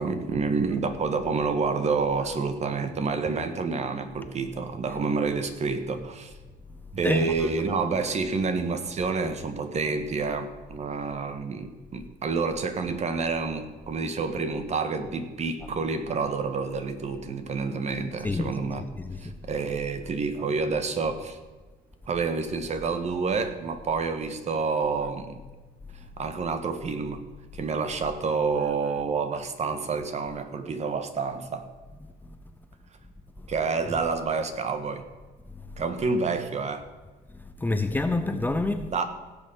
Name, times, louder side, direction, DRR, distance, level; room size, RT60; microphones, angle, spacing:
voice 1, 0.0-6.3 6.9-18.9 19.2-21.4 22.1-25.4 26.2-27.2 27.5-31.7 33.5-35.0 35.8-36.8 38.8-39.0, right 4 dB, 40° right, 9 dB, 1.6 m, -28 dB
voice 2, 19.0-19.4 37.6-38.9, left 2 dB, 10° left, 8 dB, 0.8 m, -27 dB
17.5 x 7.0 x 5.5 m, 1.3 s
cardioid pair, 110°, 17 cm